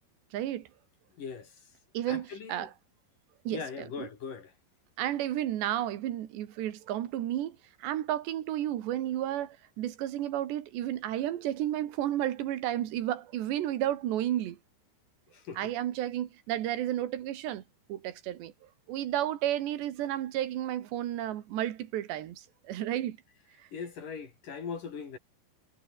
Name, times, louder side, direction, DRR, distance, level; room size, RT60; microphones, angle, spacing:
voice 1, 0.3-0.7 1.9-2.7 3.5-4.1 5.0-14.6 15.6-17.6 17.9-18.5 18.9-23.2 23.6-23.7, right 12 dB, 85° right, 4.0 m, -32 dB
voice 2, 1.2-1.5 2.1-2.7 3.5-4.5 15.3-15.6 23.7-25.2, left 6 dB, 50° left, 4.9 m, -40 dB
omnidirectional pair, 4.8 m